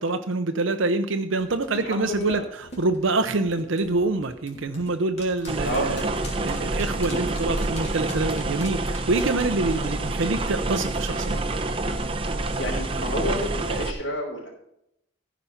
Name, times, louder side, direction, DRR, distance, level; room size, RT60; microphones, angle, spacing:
voice 1, 0.0-6.0 6.4-11.5, right 3 dB, 70° right, 7 dB, 0.7 m, -26 dB
sound 1, 1.4-10.8 11.1-11.2, left 1 dB, 30° left, 2.8 m, -43 dB
voice 2, 1.7-2.4 5.6-6.0 9.7-10.1 12.3-14.5, left 1 dB, 60° left, -8 dB, 4.2 m, -31 dB
sound 2, 5.5-13.9, right 2 dB, 25° right, 0.8 m, -27 dB
14.0 x 5.2 x 5.8 m, 0.77 s
head